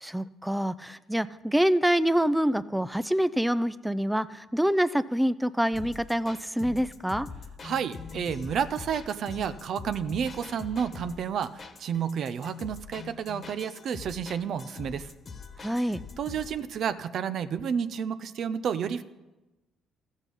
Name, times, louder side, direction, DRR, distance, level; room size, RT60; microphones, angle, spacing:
voice 1, 0.0-7.3 15.6-16.0, equal, 5° right, 15 dB, 0.4 m, -26 dB
sound 1, 5.7-16.6, left 5 dB, 40° left, 1.3 m, -43 dB
voice 2, 7.6-15.1 16.2-19.0, right 7 dB, 65° right, 12 dB, 0.6 m, -31 dB
13.5 x 8.2 x 5.3 m, 1.1 s
supercardioid pair, 75°, 0 cm